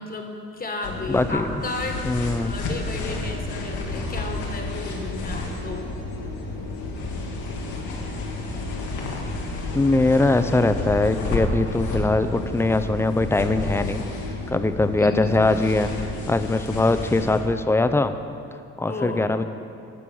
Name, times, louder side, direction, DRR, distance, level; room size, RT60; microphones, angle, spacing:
voice 1, 0.0-2.0 2.4-5.8 15.0-15.4 18.9-19.2, left 2 dB, 30° left, 2 dB, 1.4 m, -33 dB
sound 1, 0.8-17.4, left 2 dB, 80° left, 1.6 m, -31 dB
voice 2, 1.1-1.6 2.0-2.6 9.7-14.0 14.5-18.1 18.8-19.4, left 2 dB, 10° left, 10 dB, 0.5 m, -21 dB
11.5 x 4.7 x 7.0 m, 2.6 s
supercardioid pair, 80°, 30 cm